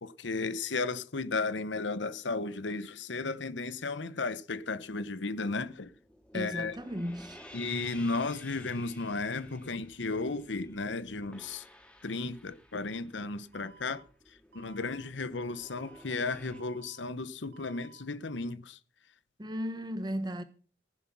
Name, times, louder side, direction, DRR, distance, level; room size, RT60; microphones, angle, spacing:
voice 1, 0.0-5.9 6.3-6.8 7.5-11.6 12.0-14.0 14.5-18.8, left 3 dB, 75° left, 0.9 m, -34 dB
sound 1, 5.7-16.6, left 1 dB, 5° left, 1.9 m, -54 dB
voice 2, 6.3-7.4 19.4-20.4, equal, 20° right, 1.1 m, -35 dB
Alarm, 13.5-14.0 14.5-15.0 15.5-16.0 16.5-17.0 17.5-18.0, right 6 dB, 60° right, 2.4 m, -56 dB
15.5 x 11.0 x 6.1 m
head